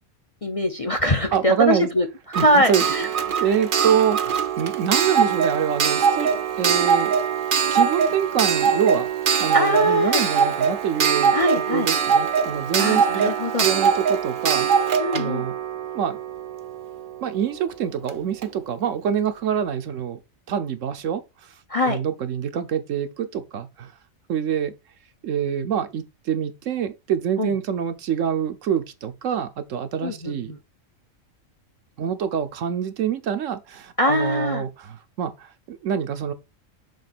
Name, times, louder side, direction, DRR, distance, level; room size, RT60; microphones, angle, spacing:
voice 1, 0.4-3.1 3.3-3.5 9.5-10.2 11.3-11.9 12.8-13.7 15.0-15.5 21.7-22.0 27.4-27.5 30.0-30.6 34.0-34.6, left 1 dB, 30° left, 0.7 m, -23 dB
voice 2, 1.3-1.9 2.3-2.9 3.2-7.1 7.7-9.1 9.4-11.4 11.7-13.3 13.6-15.5 15.9-16.2 17.2-20.2 20.5-21.2 21.8-23.9 24.3-24.7 25.2-30.5 32.0-36.3, right 8 dB, 70° right, 1.1 m, -26 dB
Clock, 2.3-16.9 18.1-18.2 18.4-18.5, right 7 dB, 50° right, 0.7 m, -22 dB
6.7 x 3.7 x 4.1 m
omnidirectional pair, 1.4 m